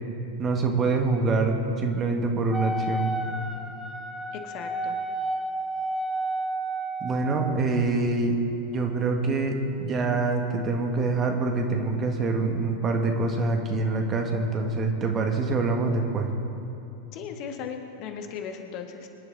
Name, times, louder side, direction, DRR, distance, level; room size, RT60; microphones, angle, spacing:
voice 1, 0.4-3.1 7.0-8.4 8.7-16.3, right 3 dB, 25° right, 3 dB, 1.7 m, -25 dB
Wind instrument woodwind instrument, 2.5-7.5, right 2 dB, ahead, 1.1 m, -31 dB
voice 2, 4.3-5.0 17.1-19.1, left 7 dB, 40° left, 5 dB, 1.4 m, -37 dB
25.5 x 10.5 x 4.0 m, 2.8 s
figure-of-eight pair, 90°, 0 cm